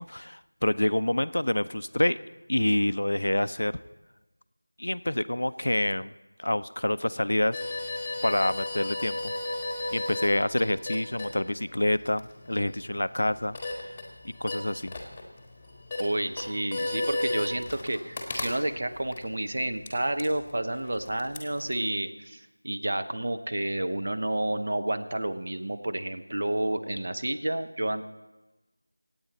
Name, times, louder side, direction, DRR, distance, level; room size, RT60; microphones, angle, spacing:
voice 1, 0.0-2.2 2.5-3.7 4.8-6.1 6.4-7.6 8.2-9.3 9.9-13.6 14.4-14.9, left 1 dB, 70° left, 14 dB, 0.5 m, -27 dB
sound 1, 7.5-21.9, left 2 dB, 10° left, 1.4 m, -36 dB
voice 2, 16.0-28.1, right 1 dB, 45° right, 8 dB, 0.9 m, -30 dB
26.0 x 8.8 x 4.1 m, 1.1 s
figure-of-eight pair, 175°, 0 cm